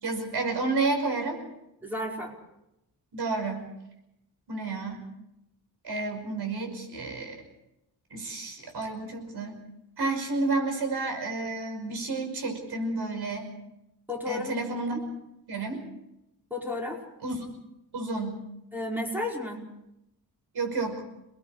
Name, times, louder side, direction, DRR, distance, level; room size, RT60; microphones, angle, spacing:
voice 1, 0.0-1.4 3.1-3.7 4.5-5.0 5.8-7.4 8.1-9.6 10.0-13.5 14.3-15.0 15.5-15.8 17.2-17.4 17.9-18.4 20.5-21.0, right 3 dB, 85° right, 4 dB, 5.6 m, -30 dB
voice 2, 1.8-2.3 10.0-10.1 14.1-14.5 14.9-15.0 16.5-17.0 18.7-19.6, left 2 dB, 5° right, -2 dB, 5.1 m, -32 dB
29.0 x 20.5 x 5.0 m, 0.85 s
wide cardioid pair, 135°, 38 cm